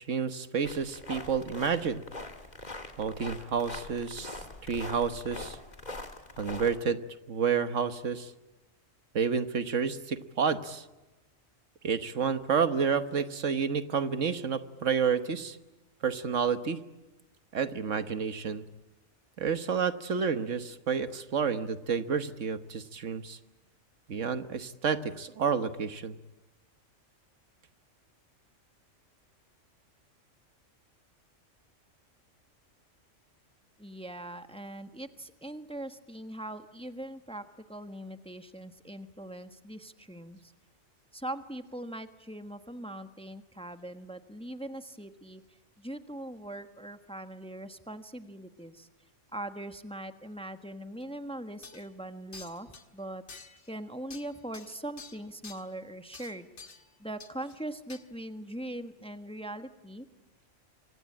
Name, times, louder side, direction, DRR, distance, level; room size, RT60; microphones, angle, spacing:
voice 1, 0.1-2.0 3.0-4.4 4.7-5.6 6.4-7.0 7.3-8.3 9.1-10.8 11.8-15.6 16.0-16.8 17.5-18.6 19.4-23.4 24.1-26.2, right 6 dB, 75° right, 11 dB, 1.6 m, -30 dB
sound 1, 0.6-6.8, left 2 dB, 35° left, 2.5 m, -43 dB
voice 2, 33.8-37.4 37.7-40.5 41.1-48.9 49.3-53.2 53.7-56.5 57.0-60.1, right 1 dB, 5° left, 8 dB, 1.2 m, -41 dB
sound 2, 51.0-51.1 51.6-51.9 52.3-52.8 53.3-53.7 54.1-55.6 56.1-56.9 57.2-57.6 57.9-58.0, left 4 dB, 65° left, 2.1 m, -49 dB
25.5 x 25.5 x 8.7 m, 1.0 s
omnidirectional pair, 1.3 m